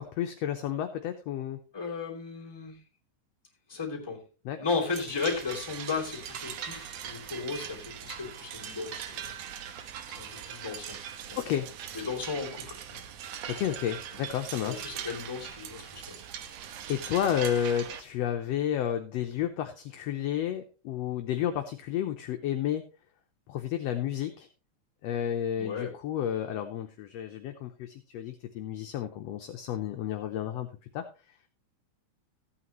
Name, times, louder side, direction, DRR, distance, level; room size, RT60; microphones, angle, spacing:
voice 1, 0.0-1.6 4.4-4.6 11.4-11.7 13.5-14.8 16.9-22.8 23.5-24.5 25.0-30.7 30.9-31.0, left 10 dB, 70° left, 5 dB, 1.6 m, -31 dB
voice 2, 1.7-2.8 3.7-4.2 4.6-9.3 10.1-11.0 11.3-11.4 11.9-13.0 14.6-16.2 25.6-25.9, left 4 dB, 10° left, -2 dB, 2.6 m, -35 dB
sound 1, 4.9-18.0, right 9 dB, 70° right, 1.9 m, -41 dB
15.0 x 8.6 x 3.0 m, 0.34 s
omnidirectional pair, 3.5 m